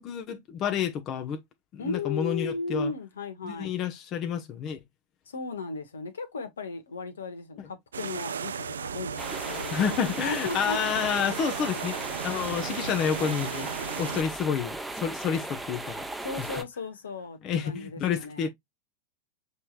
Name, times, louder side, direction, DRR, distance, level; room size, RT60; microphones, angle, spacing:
voice 1, 0.0-1.4 1.7-2.9 3.4-4.8 7.6-7.7 9.7-13.7 14.0-16.0 16.5-16.6 17.4-18.5, left 7 dB, 35° left, 0.8 m, -29 dB
voice 2, 1.8-3.8 5.3-10.8 16.2-18.5, left 4 dB, 70° left, 1.1 m, -36 dB
sound 1, 7.9-14.2, right 7 dB, 70° right, 0.3 m, -36 dB
sound 2, 9.2-16.6, right 2 dB, 5° right, 0.8 m, -37 dB
6.7 x 3.2 x 2.4 m
figure-of-eight pair, 90°, 0 cm